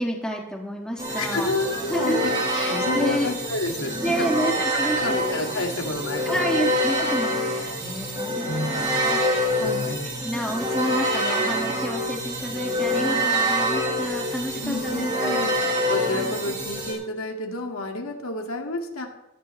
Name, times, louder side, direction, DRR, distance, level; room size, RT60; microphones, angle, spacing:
voice 1, 0.0-1.5 1.9-2.2 2.5-3.3 4.0-5.2 6.3-9.9 10.2-15.4, right 1 dB, 5° left, 0 dB, 1.9 m, -30 dB
sound 1, 1.0-16.9, equal, 20° right, 5.5 m, -26 dB
voice 2, 1.2-2.3 2.6-6.7 7.0-7.2 8.5-9.1 9.5-10.0 14.5-19.1, left 2 dB, 90° left, 2 dB, 2.2 m, -30 dB
15.5 x 14.5 x 3.3 m, 0.95 s
head